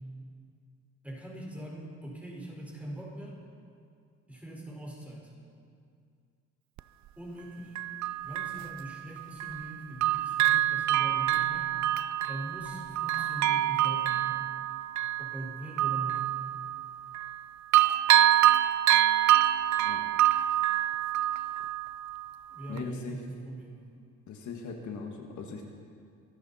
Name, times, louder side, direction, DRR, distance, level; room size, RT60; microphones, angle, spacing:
voice 1, 1.0-3.4 4.3-5.3 7.2-7.7 8.2-11.7 12.3-14.4 15.2-16.3 22.5-23.9, right 1 dB, 5° right, -3 dB, 4.5 m, -41 dB
Bell, 6.8-6.9 7.8-9.7 10.0-17.4 17.7-22.3 22.8-22.9, right 13 dB, 65° right, 0.5 m, -26 dB
voice 2, 22.7-23.2 24.3-25.6, left 5 dB, 70° left, 2 dB, 1.6 m, -39 dB
24.0 x 11.5 x 4.2 m, 2.3 s
cardioid pair, 90°, 30 cm